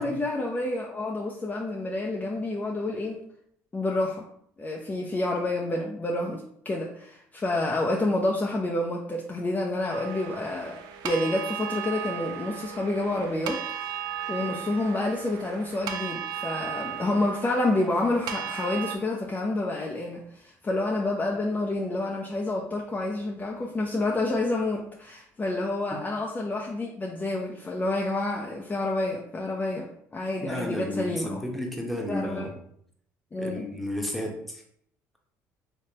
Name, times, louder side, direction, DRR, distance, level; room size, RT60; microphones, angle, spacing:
voice 1, 0.0-3.2 3.7-4.2 4.6-10.8 11.0-14.0 14.3-31.4 32.1-32.5 33.3-33.7, left 2 dB, 25° left, -1 dB, 0.5 m, -29 dB
sound 1, 9.9-19.0, right 9 dB, 70° right, 0.4 m, -36 dB
voice 2, 30.4-32.5 33.4-34.6, left 1 dB, ahead, 0 dB, 1.0 m, -32 dB
3.2 x 3.2 x 2.9 m, 0.67 s
supercardioid pair, 75°, 7 cm